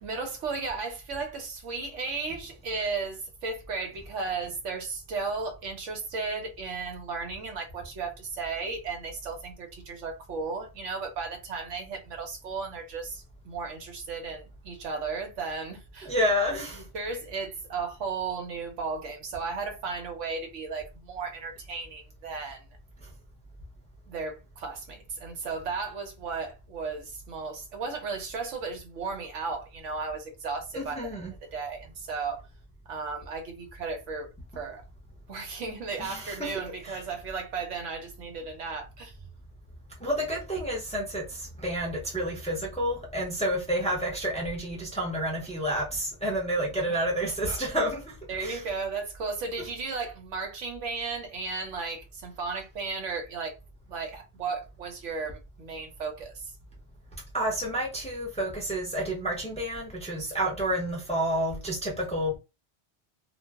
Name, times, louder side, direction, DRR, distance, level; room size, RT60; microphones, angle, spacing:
voice 1, 0.0-16.1 16.9-22.6 24.1-31.2 31.5-32.4 32.9-34.3 34.6-34.8 35.3-39.1 48.3-53.5 53.9-56.5, right 4 dB, 80° right, 1.1 m, -35 dB
voice 2, 16.0-16.8 30.7-31.3 36.0-37.0 40.0-48.6 49.6-49.7 57.3-62.4, equal, 5° left, 0.6 m, -30 dB
2.5 x 2.0 x 3.4 m
omnidirectional pair, 1.2 m